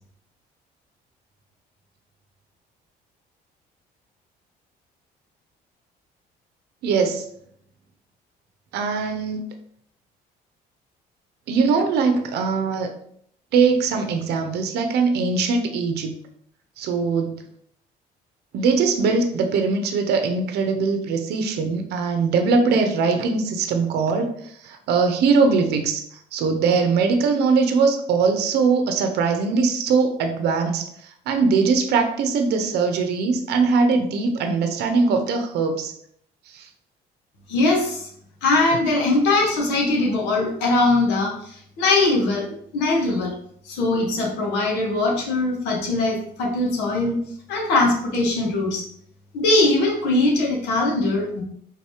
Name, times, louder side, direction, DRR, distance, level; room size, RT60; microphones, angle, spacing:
voice 1, 6.8-7.2 8.7-9.4 11.5-12.9 13.5-16.2 16.8-17.3 18.5-35.9 36.5-36.7, right 4 dB, 75° right, 6 dB, 0.7 m, -21 dB
voice 2, 37.5-38.1 38.4-43.3 43.6-47.2 47.5-48.8 49.3-51.4, left 2 dB, 85° left, -1 dB, 1.5 m, -21 dB
3.8 x 2.8 x 4.8 m, 0.67 s
cardioid pair, 110°, 17 cm